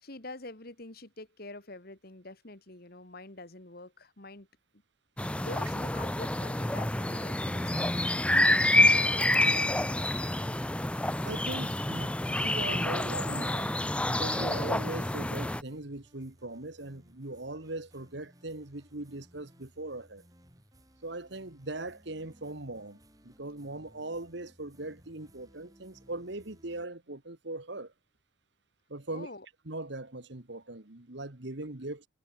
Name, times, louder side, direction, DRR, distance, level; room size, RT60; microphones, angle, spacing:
voice 1, 0.0-4.5 5.3-8.3 8.6-10.6 29.1-29.5, left 2 dB, 50° left, 2.2 m, -46 dB
sound 1, 5.2-15.6, left 1 dB, 5° left, 0.5 m, -28 dB
voice 2, 11.2-13.7 14.1-20.2 21.0-23.0 23.2-27.9 28.9-29.3 29.7-32.1, right 2 dB, 55° right, 1.7 m, -40 dB
sound 2, 14.3-26.9, equal, 15° right, 7.6 m, -60 dB
head